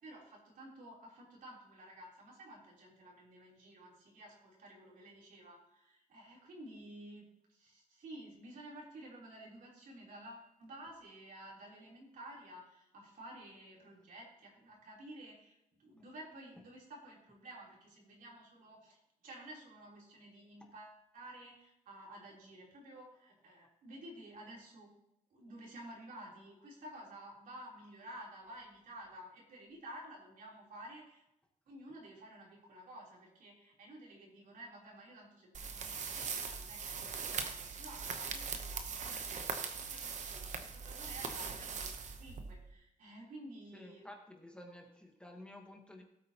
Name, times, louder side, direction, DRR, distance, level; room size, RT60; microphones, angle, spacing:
voice 1, 0.0-24.9 25.3-31.2 31.7-44.1, right 1 dB, 75° right, -3 dB, 3.6 m, -52 dB
sound 1, 35.5-42.7, right 5 dB, 55° right, 0.9 m, -41 dB
voice 2, 43.7-46.0, left 1 dB, 5° left, 1 dB, 1.3 m, -52 dB
16.5 x 8.6 x 3.0 m, 0.82 s
wide cardioid pair, 155°, 14 cm